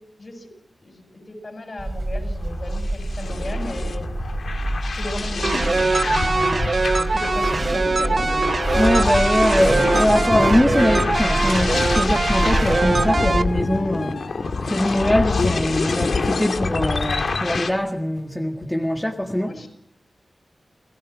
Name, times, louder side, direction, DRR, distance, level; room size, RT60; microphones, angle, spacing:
voice 1, 0.8-4.1 4.9-8.6 19.4-19.7, left 2 dB, 45° left, 7.8 m, -35 dB
sound 1, 1.8-13.2, right 1 dB, 30° right, 3.5 m, -28 dB
sound 2, 2.4-17.7, left 4 dB, 75° left, 2.2 m, -26 dB
sound 3, 5.4-13.4, right 3 dB, 50° right, 0.9 m, -22 dB
voice 2, 8.8-14.3 14.6-19.6, left 1 dB, 10° left, 1.7 m, -22 dB
30.0 x 18.0 x 6.2 m
cardioid pair, 65°, 0 cm